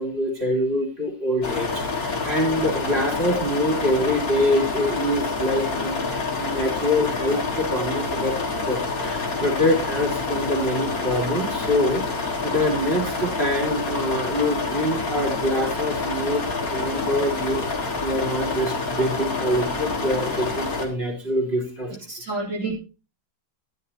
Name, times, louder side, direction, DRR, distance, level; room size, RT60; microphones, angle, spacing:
voice 1, 0.0-8.4 8.7-21.9, left 1 dB, 30° right, -1 dB, 3.5 m, -25 dB
sound 1, 1.4-20.8, left 3 dB, 50° left, 2.4 m, -27 dB
voice 2, 21.9-22.7, right 3 dB, 60° right, -4 dB, 3.3 m, -30 dB
13.5 x 10.5 x 2.8 m, 0.33 s
omnidirectional pair, 2.0 m